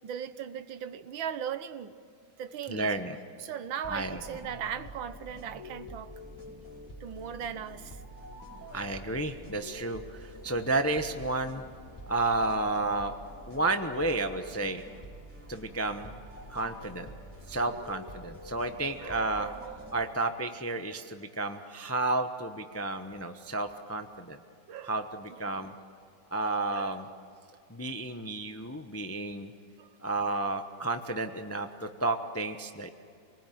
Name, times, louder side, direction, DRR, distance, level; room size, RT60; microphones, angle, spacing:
voice 1, 0.0-2.0 2.4-3.0 3.4-6.1 7.0-8.0 19.0-20.0 24.7-25.0 25.3-25.7 26.7-27.0 29.8-29.9, right 8 dB, 80° right, 12 dB, 1.7 m, -39 dB
voice 2, 2.7-3.2 3.9-4.2 8.7-11.6 12.1-13.1 13.5-14.8 15.5-16.1 16.5-17.1 17.5-19.5 19.9-24.4 24.8-25.7 26.3-27.1 27.7-29.5 30.0-32.9, right 2 dB, 15° left, 7 dB, 0.5 m, -31 dB
sound 1, 3.8-20.3, equal, 5° right, 4.1 m, -47 dB
28.0 x 20.0 x 9.3 m, 2.4 s
omnidirectional pair, 2.1 m